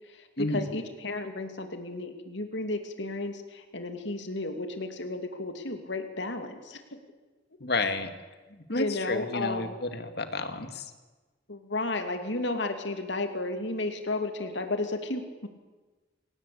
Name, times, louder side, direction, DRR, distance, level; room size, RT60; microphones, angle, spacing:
voice 1, 0.1-7.0 8.7-9.7 11.5-15.5, left 2 dB, 70° left, 6 dB, 2.6 m, -33 dB
voice 2, 7.6-8.1 8.7-10.9, left 2 dB, 55° left, 8 dB, 2.1 m, -31 dB
27.5 x 18.0 x 8.5 m, 1.3 s
head